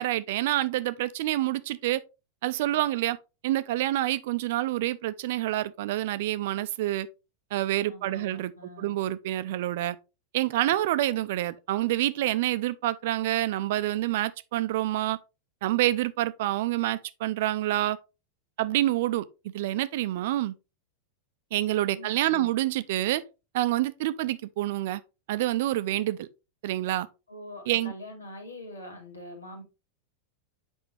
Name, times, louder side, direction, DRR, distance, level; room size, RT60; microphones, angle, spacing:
voice 1, 0.0-2.0 2.4-3.2 3.4-7.1 7.5-8.5 8.8-10.0 10.3-15.2 15.6-18.0 18.6-19.2 19.5-20.5 21.5-23.2 23.5-25.0 25.3-26.3 26.6-27.1 27.7-27.9, right 15 dB, 55° right, 0.6 m, -27 dB
voice 2, 7.9-9.0 21.9-22.5 27.3-29.6, left 1 dB, 75° left, 2.4 m, -44 dB
8.1 x 5.4 x 3.4 m
figure-of-eight pair, 90°, 0 cm